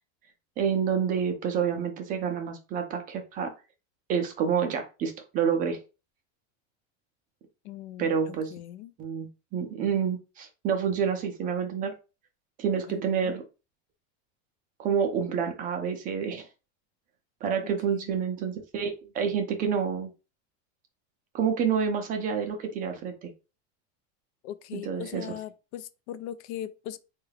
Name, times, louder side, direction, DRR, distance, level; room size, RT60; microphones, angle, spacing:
voice 1, 0.6-3.5 4.1-5.8 8.0-8.5 9.0-11.9 12.6-13.4 14.8-16.5 17.4-20.1 21.3-23.3 24.7-25.3, right 7 dB, 25° right, 0.4 m, -28 dB
voice 2, 7.6-8.9 12.9-13.3 17.9-18.1 24.4-27.0, left 11 dB, 70° left, 0.5 m, -40 dB
3.6 x 2.3 x 3.2 m
supercardioid pair, 160°, 35 cm